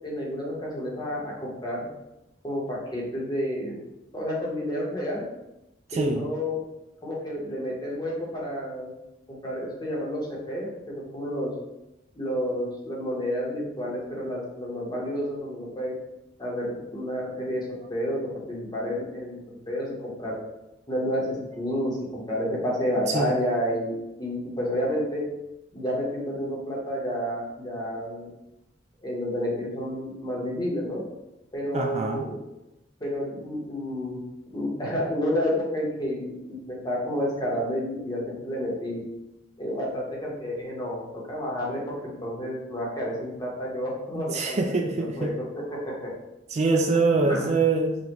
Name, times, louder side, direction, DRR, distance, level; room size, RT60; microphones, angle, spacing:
voice 1, 0.0-1.9 2.4-3.8 4.1-5.2 5.9-6.6 7.0-8.9 9.3-11.5 12.1-15.9 16.4-17.6 17.9-20.3 20.9-23.9 24.2-25.2 25.7-28.3 29.0-31.0 31.5-32.4 33.0-34.2 34.5-36.6 36.8-39.0 39.6-41.0 41.3-45.9 47.2-47.5, equal, 20° left, -4 dB, 1.1 m, -30 dB
voice 2, 5.9-6.2 23.1-23.4 31.7-32.2 44.2-45.3 46.5-48.0, right 3 dB, 35° right, 2 dB, 0.3 m, -24 dB
5.1 x 2.5 x 3.0 m, 0.92 s
head